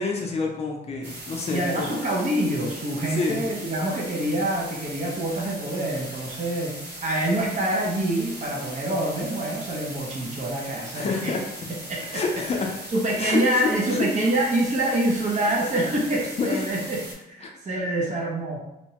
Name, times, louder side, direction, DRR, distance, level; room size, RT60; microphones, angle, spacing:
voice 1, 0.0-1.9 3.2-3.4 10.9-11.4 12.1-12.7 13.2-14.1 16.4-16.6 17.4-17.5, left 4 dB, 40° left, 0 dB, 0.4 m, -27 dB
sound 1, 1.0-17.1, right 1 dB, 85° right, 0.9 m, -39 dB
voice 2, 1.5-11.3 11.9-12.4 12.9-18.7, right 1 dB, 45° right, -2 dB, 0.6 m, -26 dB
2.8 x 2.1 x 2.8 m, 0.91 s
cardioid pair, 135°, 17 cm